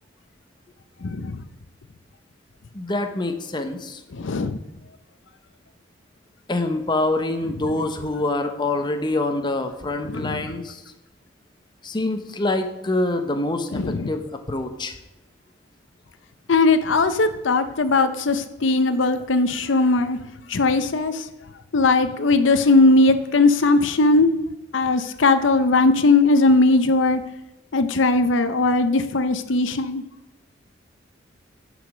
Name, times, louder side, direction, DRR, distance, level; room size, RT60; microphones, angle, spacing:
voice 1, 1.0-1.4 4.1-4.6 10.0-10.5 13.7-14.1 16.5-20.2 20.5-21.3 21.7-24.3 24.7-27.2 27.7-30.0, left 3 dB, 75° left, 10 dB, 0.6 m, -19 dB
voice 2, 2.7-4.0 6.5-10.8 11.8-14.2 14.5-15.0, left 2 dB, 25° left, 6 dB, 0.8 m, -25 dB
10.5 x 5.0 x 6.2 m, 0.94 s
head